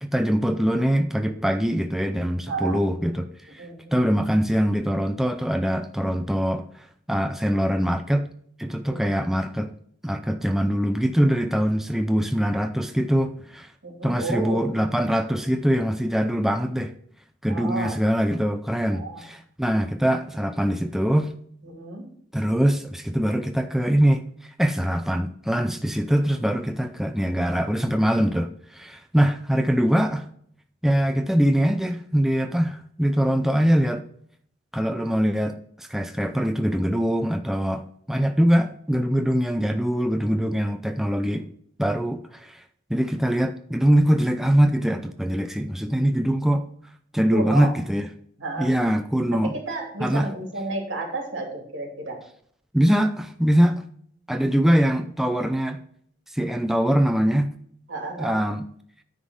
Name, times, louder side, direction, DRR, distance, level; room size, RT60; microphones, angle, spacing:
voice 1, 0.0-3.3 3.9-6.6 7.1-8.3 8.6-9.7 10.0-13.7 14.0-16.9 17.4-21.3 22.3-24.2 24.6-30.3 30.8-34.0 34.7-37.8 38.1-41.5 41.8-42.6 42.9-46.6 47.1-48.1 48.6-49.5 50.0-50.3 52.7-53.8 54.3-55.8 56.3-57.5 58.2-58.6, equal, ahead, 0.4 m, -23 dB
voice 2, 2.5-2.8 3.6-4.1 8.9-9.2 13.8-14.7 17.5-18.0 18.9-19.2 21.6-22.1 47.3-47.7 48.4-48.7 49.3-52.2 57.9-58.4, right 2 dB, 85° right, 2.5 m, -32 dB
9.7 x 3.7 x 6.2 m
head